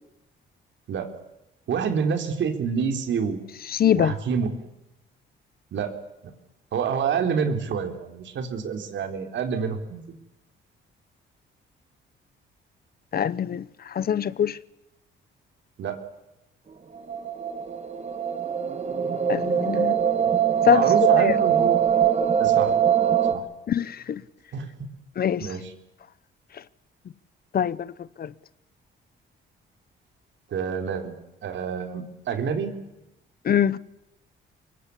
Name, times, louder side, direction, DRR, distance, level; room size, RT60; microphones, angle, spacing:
voice 1, 1.7-3.4 3.9-4.7 5.7-5.9 6.7-10.0 15.8-16.0 20.2-20.3 20.6-21.8 22.4-22.7 23.3-23.4 24.5-24.9 25.4-25.7 30.5-31.1 31.4-32.7, right 6 dB, 70° right, 3.9 m, -28 dB
voice 2, 3.7-4.2 13.1-14.6 19.3-20.0 20.6-21.4 23.7-24.2 25.2-25.5 26.5-26.6 27.5-28.3 33.4-33.8, left 9 dB, 50° left, 0.8 m, -24 dB
sound 1, 16.9-23.3, right 9 dB, 35° right, 2.1 m, -22 dB
24.5 x 22.0 x 8.4 m
cardioid pair, 90°, 20 cm